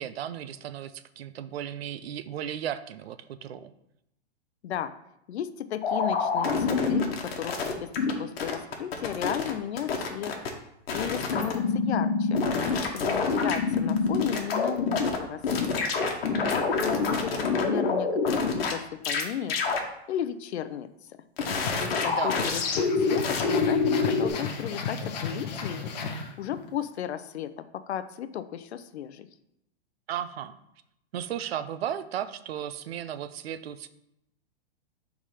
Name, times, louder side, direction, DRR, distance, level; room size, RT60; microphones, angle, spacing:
voice 1, 0.0-3.7 22.0-22.4 30.1-30.5 31.1-33.9, right 10 dB, 70° right, 13 dB, 0.5 m, -35 dB
voice 2, 5.3-7.9 8.2-10.3 10.9-12.4 12.9-15.9 16.5-19.6 20.1-20.9 21.8-25.8 26.4-29.3, left 10 dB, 85° left, 12 dB, 0.6 m, -34 dB
sound 1, 5.8-8.1 8.4-9.5 9.8-10.5 10.9-15.2 15.4-18.7 19.0-19.2 19.5-19.8 21.4-24.3, left 4 dB, 65° left, 1.2 m, -26 dB
sound 2, 21.5-26.7, left 5 dB, 40° left, 0.8 m, -34 dB
4.9 x 3.6 x 5.5 m, 0.80 s
hypercardioid pair, 170°, 32 cm